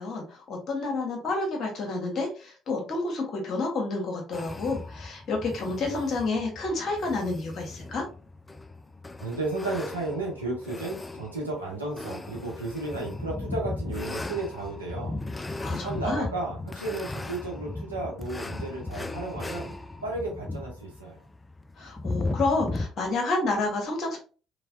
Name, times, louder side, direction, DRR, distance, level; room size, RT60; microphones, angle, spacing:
voice 1, 0.0-8.0 15.6-16.3 21.8-24.2, left 3 dB, 50° left, 1 dB, 1.3 m, -29 dB
sound 1, 4.3-22.9, left 2 dB, 20° left, 0.3 m, -37 dB
voice 2, 9.2-15.2 15.8-19.7 20.0-21.2, right 2 dB, 85° right, -2 dB, 0.9 m, -33 dB
3.2 x 3.1 x 2.6 m, 0.36 s
figure-of-eight pair, 50°, 0 cm